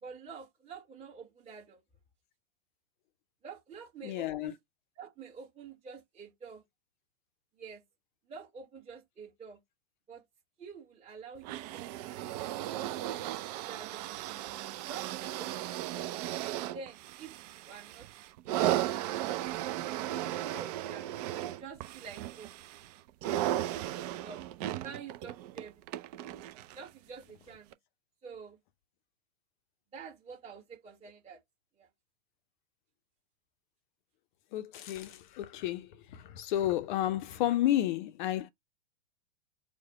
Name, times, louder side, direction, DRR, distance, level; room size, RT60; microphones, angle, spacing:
voice 1, 0.0-1.8 3.4-4.6 5.0-6.6 7.6-7.8 8.3-9.6 10.1-10.2 10.6-11.9 13.6-14.1 14.9-16.0 16.5-18.1 18.4-18.6 20.1-22.6 23.8-24.4 24.8-25.8 26.7-27.7 28.2-28.6 29.9-31.4 31.8-31.9, right 5 dB, 15° right, 1.3 m, -48 dB
voice 2, 4.0-4.5 34.5-35.9 36.1-38.5, left 13 dB, 40° left, 0.5 m, -31 dB
sound 1, 11.4-26.9 27.7-27.8, right 13 dB, 35° right, 0.4 m, -36 dB
4.7 x 2.2 x 4.6 m
hypercardioid pair, 105°, 37 cm